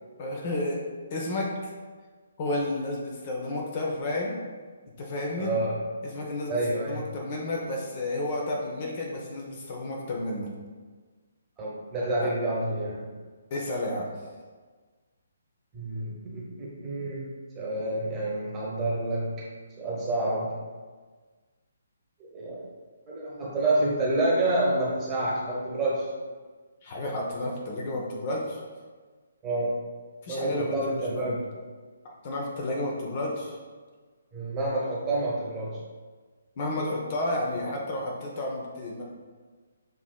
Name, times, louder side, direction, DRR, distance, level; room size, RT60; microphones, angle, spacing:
voice 1, 0.2-0.8 1.1-1.7 2.4-4.4 4.9-5.5 6.0-10.5 12.2-12.3 13.5-14.0 26.8-28.6 30.2-31.4 32.0-33.6 36.6-39.0, left 1 dB, 35° left, -2 dB, 0.6 m, -31 dB
voice 2, 5.4-5.8 6.5-7.1 11.6-13.1 15.7-17.3 17.5-19.4 19.8-20.6 22.2-22.6 23.1-26.1 29.4-29.7 30.3-31.4 34.3-35.8, right 2 dB, 15° right, -6 dB, 1.1 m, -28 dB
6.8 x 2.9 x 2.3 m, 1.4 s
figure-of-eight pair, 135°, 0 cm